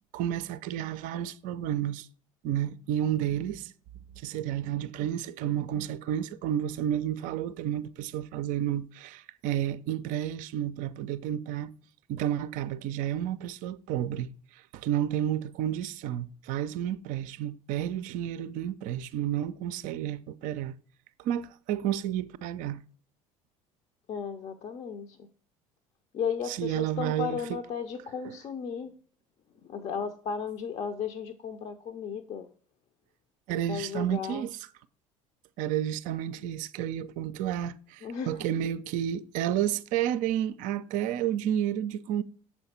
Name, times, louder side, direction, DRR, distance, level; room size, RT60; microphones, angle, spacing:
voice 1, 0.1-2.1 2.4-3.7 4.2-11.7 12.1-20.7 21.2-22.8 26.5-27.4 33.5-34.6 35.6-42.2, right 11 dB, 50° right, 0.4 m, -31 dB
voice 2, 24.1-25.3 26.1-28.9 29.6-32.5 33.7-34.5 38.0-38.5, left 7 dB, 40° left, 0.6 m, -35 dB
7.0 x 4.4 x 4.2 m
figure-of-eight pair, 60°, 17 cm